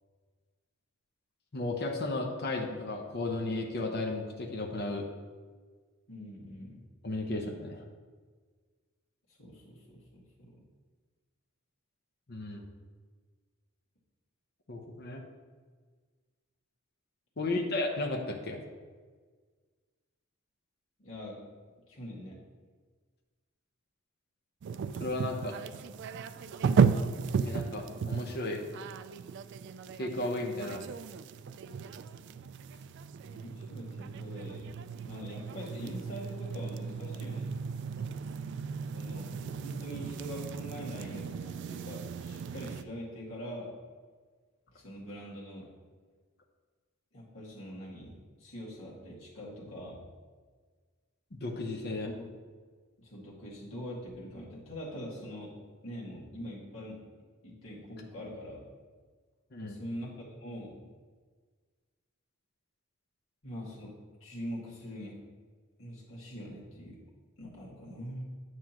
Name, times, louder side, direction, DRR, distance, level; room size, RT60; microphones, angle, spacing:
voice 1, 1.5-5.1 7.0-7.8 12.3-12.7 14.7-15.2 17.4-18.6 25.0-25.6 27.4-28.6 29.9-30.9 51.3-52.1 59.5-59.8, left 2 dB, 50° left, 2 dB, 0.8 m, -34 dB
voice 2, 6.1-6.8 9.4-10.6 21.0-21.4 21.9-22.4 25.7-25.8 26.3-26.4 33.2-34.7 35.0-37.4 38.9-43.7 44.7-45.6 47.1-48.1 48.4-50.0 52.0-52.3 53.0-55.5 55.8-57.0 57.4-58.7 59.7-60.8 63.4-63.9 64.2-65.2 65.8-67.0 67.4-68.2, equal, 70° left, -5 dB, 2.2 m, -43 dB
sound 1, 24.6-42.8, right 6 dB, 55° right, 0.3 m, -35 dB
9.4 x 6.2 x 3.0 m, 1.5 s
head